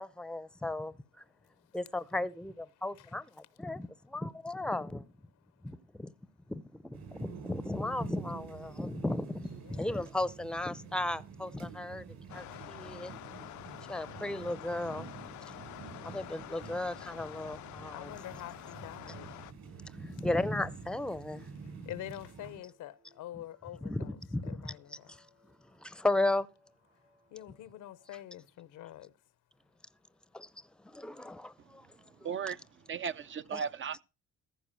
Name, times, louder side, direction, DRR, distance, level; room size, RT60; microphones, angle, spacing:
voice 1, 0.0-1.2 1.7-5.1 5.6-6.1 6.5-12.1 12.3-13.1 13.9-15.1 16.0-18.1 19.9-21.5 23.8-24.8 25.1-26.5 30.3-32.4 33.5-33.6, left 2 dB, 5° left, 0.6 m, -35 dB
voice 2, 1.3-1.8 3.0-3.1 5.5-5.8 9.6-9.9 17.2-17.3 17.9-19.4 20.1-20.2 21.6-24.2 24.4-25.1 27.3-29.1, left 13 dB, 90° left, 0.9 m, -46 dB
sound 1, 6.9-22.6, right 6 dB, 60° right, 6.1 m, -48 dB
sound 2, 12.3-19.5, left 15 dB, 75° left, 0.5 m, -47 dB
sound 3, 17.8-28.1, equal, 85° right, 7.5 m, -72 dB
voice 3, 32.2-34.0, right 7 dB, 40° right, 0.6 m, -37 dB
14.5 x 4.9 x 7.5 m
cardioid pair, 90°, 30 cm